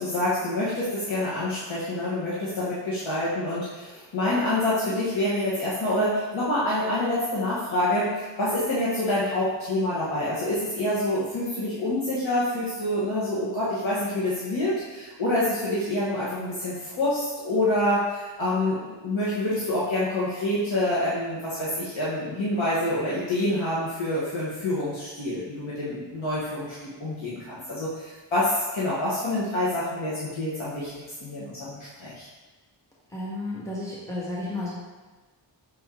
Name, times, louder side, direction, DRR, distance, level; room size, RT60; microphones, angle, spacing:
voice 1, 0.0-30.9 31.2-32.3, left 1 dB, 90° left, -9 dB, 1.4 m, -27 dB
voice 2, 33.1-34.7, left 2 dB, 5° left, -7 dB, 1.6 m, -32 dB
6.5 x 4.4 x 3.8 m, 1.3 s
wide cardioid pair, 60°, 45 cm